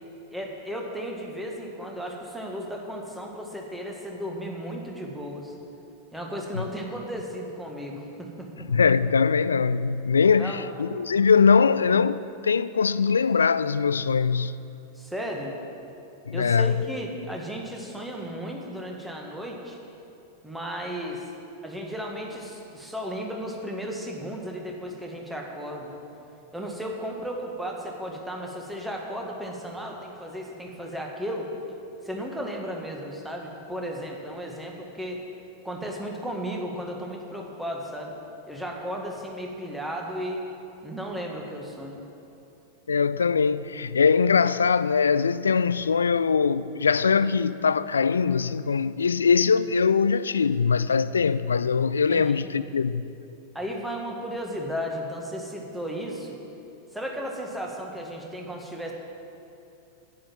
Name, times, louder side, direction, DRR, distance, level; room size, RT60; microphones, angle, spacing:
voice 1, 0.3-5.5 6.1-8.7 10.4-10.7 15.0-15.6 16.3-19.8 20.4-21.2 21.6-26.0 26.5-31.5 32.0-35.2 35.6-38.2 38.5-40.4 40.8-42.0 52.1-52.5 53.5-56.4 56.9-58.9, equal, 5° right, 1.9 m, -34 dB
voice 2, 8.6-14.6 16.3-16.7 42.9-53.0, left 5 dB, 70° left, 0.4 m, -22 dB
11.0 x 9.6 x 7.5 m
figure-of-eight pair, 90°, 0 cm